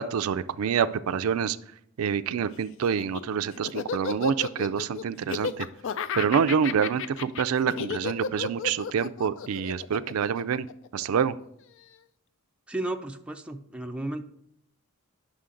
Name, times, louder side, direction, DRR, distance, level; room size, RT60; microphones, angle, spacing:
voice 1, 0.0-1.6 2.0-5.7 6.2-10.7 10.9-11.4, right 7 dB, 85° right, 12 dB, 0.4 m, -27 dB
Laughter, 2.8-11.3, left 6 dB, 60° left, 0.4 m, -33 dB
voice 2, 12.7-14.2, right 1 dB, 5° right, 5 dB, 0.4 m, -33 dB
9.6 x 6.4 x 3.8 m, 0.72 s
head